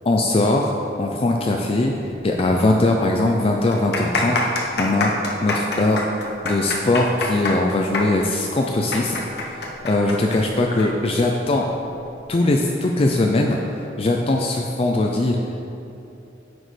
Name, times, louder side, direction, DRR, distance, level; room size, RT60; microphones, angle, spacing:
voice 1, 0.0-1.9 2.2-5.1 5.4-6.0 6.4-9.6 9.8-11.7 12.3-13.6 14.0-15.4, left 2 dB, 30° left, 1 dB, 0.4 m, -20 dB
sound 1, 2.5-2.6 2.9-3.0 3.6-10.9 11.1-11.2 12.0-12.3, left 3 dB, 60° left, 1.0 m, -26 dB
9.1 x 6.2 x 3.3 m, 2.8 s
head